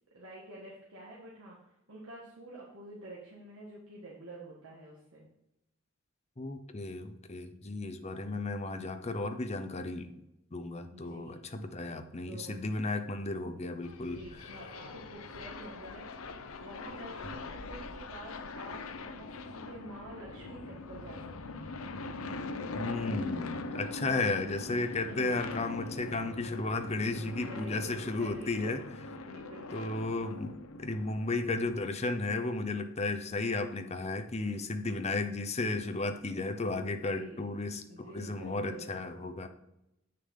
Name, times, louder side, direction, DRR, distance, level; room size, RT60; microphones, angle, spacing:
voice 1, 0.1-5.3 10.9-11.4 12.2-12.7 14.1-21.8 25.1-25.4 26.9-28.8 29.1-30.0 34.4-34.6 37.1-37.5 37.9-38.9, right 1 dB, 65° right, -4 dB, 1.6 m, -49 dB
voice 2, 6.4-10.1 10.5-14.2 22.7-28.8 29.7-39.5, left 2 dB, 30° left, 8 dB, 0.7 m, -34 dB
sound 1, 13.8-32.0, left 3 dB, 75° left, 0.7 m, -42 dB
8.3 x 6.6 x 3.7 m, 0.86 s
head